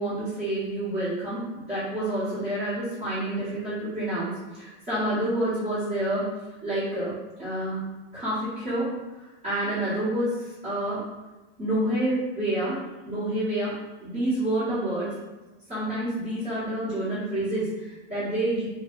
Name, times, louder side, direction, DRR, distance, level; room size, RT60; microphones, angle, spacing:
voice 1, 0.0-6.3 6.6-7.8 8.1-8.9 9.4-11.0 11.6-15.1 15.7-18.7, right 1 dB, 25° right, -15 dB, 1.3 m, -28 dB
3.0 x 2.3 x 3.1 m, 1.1 s
supercardioid pair, 175°, 31 cm